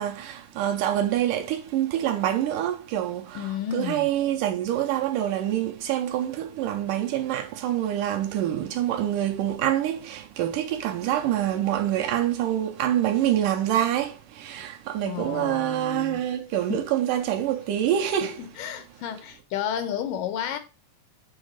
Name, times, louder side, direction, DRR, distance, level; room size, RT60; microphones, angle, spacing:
voice 1, 0.0-18.4, right 11 dB, 75° right, 2.1 m, -26 dB
voice 2, 3.4-4.1 15.0-16.2 16.7-16.8 18.4-20.6, left 9 dB, 75° left, 2.1 m, -32 dB
7.4 x 3.5 x 6.4 m
omnidirectional pair, 4.1 m